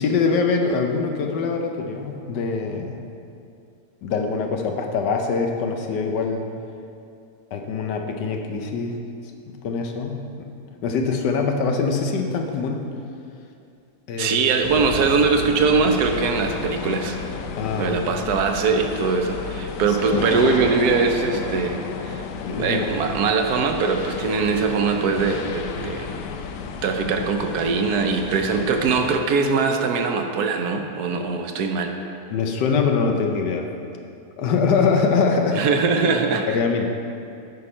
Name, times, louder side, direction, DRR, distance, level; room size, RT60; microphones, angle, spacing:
voice 1, 0.0-3.0 4.0-6.5 7.5-9.0 9.6-10.5 10.8-12.9 14.1-14.5 17.6-17.9 19.9-20.0 22.4-22.9 32.3-33.7 34.4-35.6 36.5-36.9, left 5 dB, 85° left, 3 dB, 1.4 m, -23 dB
voice 2, 14.2-17.2 17.8-22.2 22.5-26.1 26.8-31.9 35.5-36.6, right 4 dB, 70° right, 4 dB, 1.2 m, -22 dB
sound 1, 14.6-29.2, left 6 dB, 70° left, 0.8 m, -32 dB
9.4 x 5.8 x 4.4 m, 2.5 s
omnidirectional pair, 1.8 m